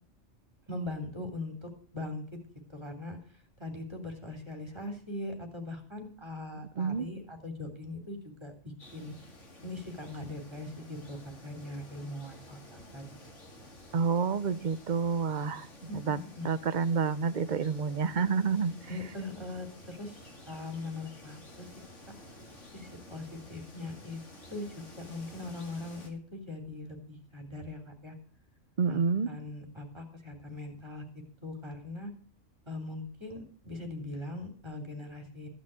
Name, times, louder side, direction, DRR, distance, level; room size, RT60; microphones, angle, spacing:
voice 1, 0.7-2.2 2.7-8.5 8.9-9.1 9.6-12.6 12.9-13.2 15.9-16.5 18.9-21.7 22.7-24.2 24.5-28.1 28.9-29.0 29.3-31.0 31.4-32.1 32.7-35.5, left 2 dB, 20° right, 4 dB, 3.2 m, -41 dB
voice 2, 6.8-7.1 13.9-15.7 15.9-16.2 16.4-18.7 28.8-29.3, right 5 dB, 45° right, 15 dB, 0.7 m, -28 dB
sound 1, 8.8-26.1, left 1 dB, 75° left, 3.0 m, -51 dB
15.0 x 6.1 x 8.8 m, 0.42 s
omnidirectional pair, 1.3 m